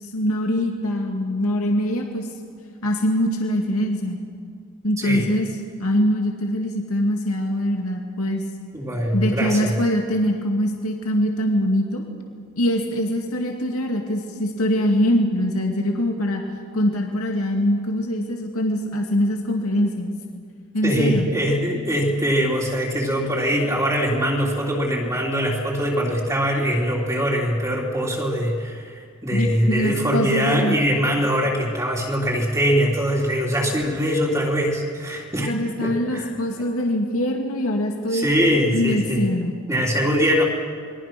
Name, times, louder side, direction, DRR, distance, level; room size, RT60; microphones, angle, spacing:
voice 1, 0.0-2.3 2.8-4.2 4.8-5.5 5.8-8.4 9.1-12.0 12.6-16.4 16.7-20.1 20.7-21.2 29.3-30.8 35.5-38.3 38.7-39.5, equal, 80° left, 1 dB, 2.4 m, -23 dB
voice 2, 8.7-9.8 20.8-35.5 35.8-36.4 38.1-39.3 39.7-40.4, equal, 15° right, -2 dB, 3.3 m, -22 dB
28.5 x 22.5 x 6.1 m, 2.1 s
head